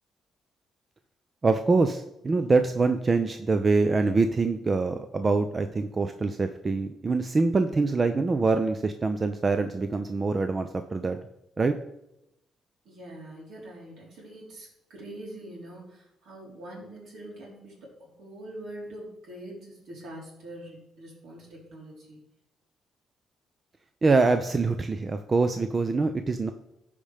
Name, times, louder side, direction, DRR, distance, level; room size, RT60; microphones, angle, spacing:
voice 1, 1.4-11.2 11.6-11.8 24.0-26.5, right 3 dB, 30° right, 8 dB, 0.5 m, -24 dB
voice 2, 12.8-22.2, right 1 dB, 75° right, -3 dB, 3.7 m, -44 dB
14.0 x 5.1 x 3.4 m, 0.86 s
cardioid pair, 90°, 0 cm